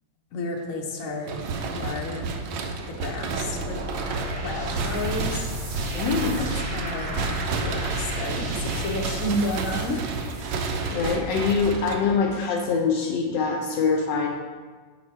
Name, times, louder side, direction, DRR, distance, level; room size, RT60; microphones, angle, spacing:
voice 1, 0.3-1.4 1.7-2.3 3.0-3.8 4.4-5.5 6.4-10.0, left 1 dB, 55° left, 1 dB, 1.0 m, -31 dB
sound 1, 1.2-12.4, right 4 dB, 75° right, 1.3 m, -31 dB
sound 2, 3.3-11.1, equal, 50° right, 0.7 m, -34 dB
voice 2, 5.9-6.4 10.9-14.3, left 5 dB, 75° left, 1 dB, 1.2 m, -24 dB
6.4 x 4.3 x 4.4 m, 1.5 s
omnidirectional pair, 2.1 m